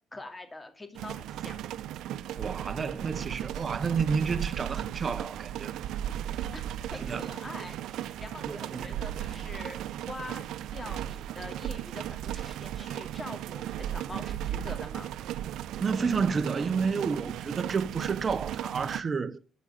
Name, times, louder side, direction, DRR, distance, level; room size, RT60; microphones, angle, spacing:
voice 1, 0.1-1.6 6.5-6.6 6.9-15.2, left 2 dB, 20° left, 2.7 m, -44 dB
sound 1, 0.9-19.0, right 11 dB, 80° right, 0.5 m, -36 dB
voice 2, 2.3-5.8 6.9-7.2 8.5-9.0 15.8-19.4, right 5 dB, 35° right, 0.8 m, -30 dB
12.5 x 5.0 x 8.8 m
cardioid pair, 100°, 0 cm